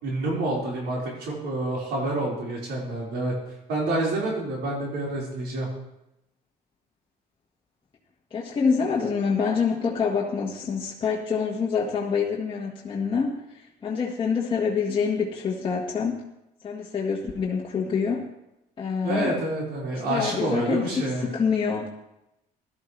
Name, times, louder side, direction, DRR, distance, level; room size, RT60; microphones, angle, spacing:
voice 1, 0.0-3.3 3.7-5.7 19.0-21.3, right 2 dB, 85° right, -4 dB, 4.9 m, -28 dB
voice 2, 8.3-16.2 16.6-18.3 18.8-19.4 19.9-21.9, left 5 dB, 30° left, -4 dB, 1.7 m, -26 dB
16.5 x 12.5 x 3.3 m, 0.88 s
cardioid pair, 110°, 17 cm